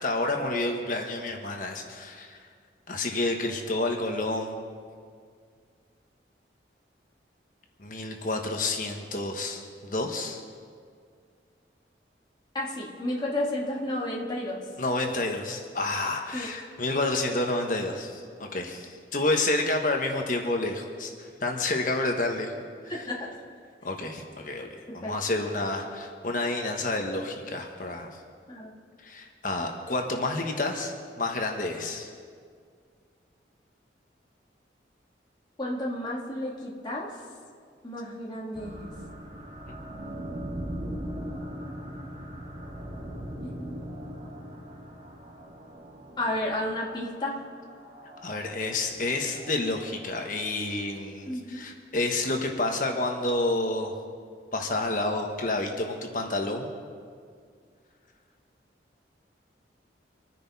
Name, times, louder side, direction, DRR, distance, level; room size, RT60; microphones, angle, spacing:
voice 1, 0.0-2.5 2.9-4.7 7.8-10.4 14.8-22.5 22.8-23.1 23.8-24.7 24.9-28.2 29.0-32.1 39.7-39.8 48.2-54.0 54.5-56.7, left 2 dB, 45° left, 3 dB, 1.3 m, -29 dB
voice 2, 12.5-14.6 16.3-16.5 22.9-23.3 24.9-25.1 28.5-28.7 35.6-37.1 37.8-38.9 43.4-43.8 46.2-47.4 51.3-51.6, left 1 dB, 25° left, -4 dB, 2.0 m, -32 dB
sound 1, 38.6-50.5, equal, 35° right, 1.9 m, -40 dB
25.5 x 10.0 x 4.2 m, 2.1 s
head